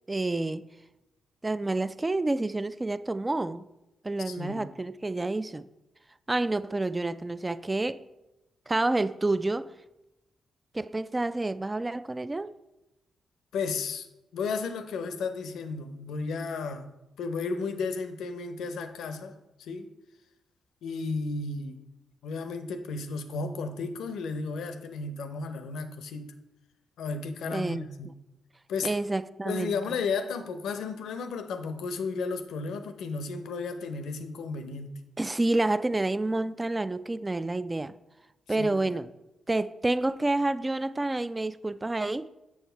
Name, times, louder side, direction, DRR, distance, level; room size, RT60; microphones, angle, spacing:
voice 1, 0.1-0.7 1.4-3.6 4.0-5.7 6.3-8.0 8.7-9.7 10.7-12.5 27.5-27.9 28.8-29.8 35.2-37.9 38.5-39.1 39.5-42.3, right 2 dB, 25° right, 0.4 m, -29 dB
voice 2, 4.2-4.7 13.5-14.1 14.3-19.9 20.8-21.8 22.2-26.3 27.0-28.1 28.7-28.9 29.4-35.0 38.6-39.0, left 4 dB, 75° left, 0.6 m, -34 dB
7.2 x 6.3 x 4.5 m
hypercardioid pair, 40°, 0 cm